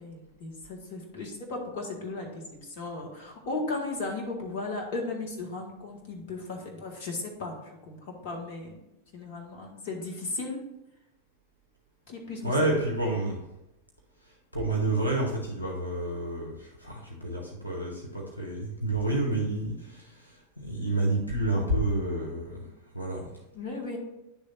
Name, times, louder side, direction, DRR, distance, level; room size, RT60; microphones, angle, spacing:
voice 1, 0.0-8.8 9.1-10.6 12.1-12.7 23.5-24.0, left 3 dB, 50° left, 0 dB, 1.6 m, -36 dB
voice 2, 12.4-13.4 14.5-22.7 22.9-23.3, right 2 dB, 90° left, -1 dB, 1.1 m, -29 dB
10.0 x 3.4 x 4.1 m, 0.95 s
figure-of-eight pair, 90°, 0 cm